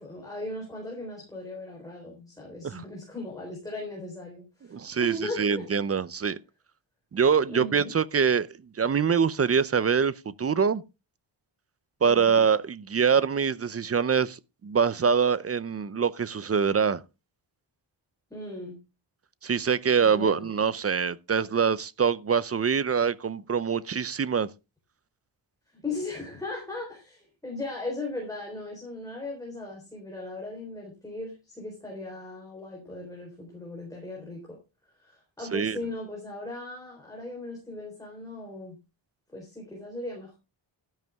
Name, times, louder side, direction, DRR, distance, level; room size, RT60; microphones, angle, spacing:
voice 1, 0.0-5.7 7.5-7.9 12.0-12.4 18.3-18.8 20.0-20.5 25.7-34.6 35.0-38.8 39.3-40.4, left 2 dB, 5° left, 3.9 m, -38 dB
voice 2, 4.7-6.4 7.1-8.5 8.8-10.1 10.4-10.8 12.0-14.4 14.6-17.0 19.4-24.5 35.5-35.8, right 6 dB, 30° right, 0.5 m, -24 dB
12.5 x 10.5 x 3.5 m
wide cardioid pair, 175°, 47 cm